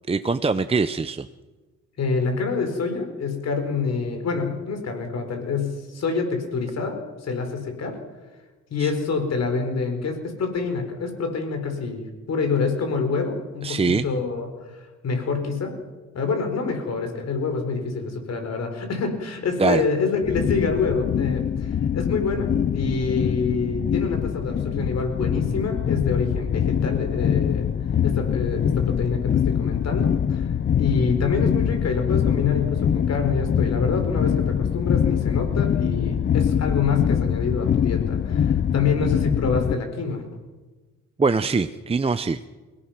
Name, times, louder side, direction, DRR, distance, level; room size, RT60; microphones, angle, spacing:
voice 1, 0.1-1.3 8.8-8.9 13.6-14.1 19.6-19.8 41.2-42.4, right 4 dB, 20° right, 10 dB, 0.7 m, -22 dB
voice 2, 2.0-8.0 8.7-15.7 16.1-27.7 28.0-30.5 30.8-40.2, left 4 dB, 60° left, 5 dB, 4.9 m, -26 dB
sound 1, 20.2-39.7, left 8 dB, 35° left, 0.6 m, -23 dB
28.5 x 17.5 x 6.1 m, 1.3 s
cardioid pair, 90°, 30 cm